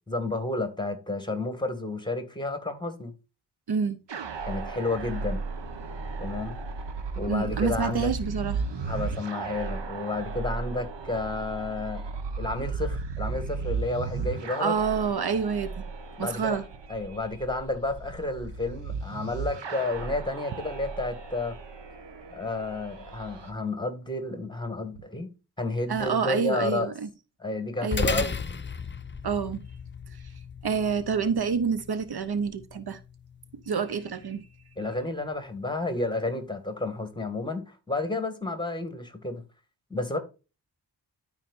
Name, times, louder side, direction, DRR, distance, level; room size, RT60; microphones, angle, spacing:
voice 1, 0.1-3.1 4.5-5.4 6.2-6.6 7.1-8.1 8.9-12.0 12.4-14.8 16.2-16.6 16.9-21.6 22.3-25.3 25.6-26.9 27.4-28.3 34.8-39.4 39.9-40.2, left 2 dB, 10° left, 2.2 m, -31 dB
sound 1, 4.1-23.5, right 4 dB, 85° right, 1.3 m, -35 dB
voice 2, 7.3-8.6 14.6-15.8 16.2-16.6 25.9-27.1 27.8-28.2 29.2-29.6 30.6-33.0 33.7-34.4, right 6 dB, 65° right, 0.9 m, -28 dB
sound 2, 27.9-36.6, left 5 dB, 25° left, 0.7 m, -37 dB
12.5 x 5.0 x 2.6 m
wide cardioid pair, 75°, 41 cm